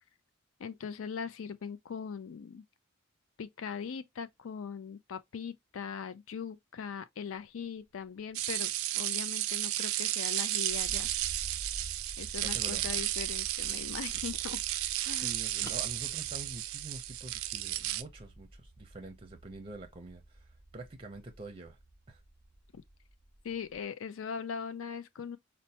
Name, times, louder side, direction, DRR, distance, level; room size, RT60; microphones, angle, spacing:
voice 1, 0.6-2.6 3.4-11.1 12.2-14.6 15.0-15.3 22.7-22.8 23.4-25.4, left 6 dB, 65° left, 0.4 m, -40 dB
sound 1, 8.3-18.0, right 15 dB, 75° right, 0.3 m, -33 dB
sound 2, 10.6-23.8, right 1 dB, 45° left, 1.6 m, -50 dB
voice 2, 12.4-13.0 15.1-20.5 20.7-21.8 22.1-22.2, right 2 dB, 25° right, 0.5 m, -46 dB
sound 3, 14.1-17.1, left 1 dB, 15° left, 0.6 m, -54 dB
4.3 x 2.1 x 2.7 m
head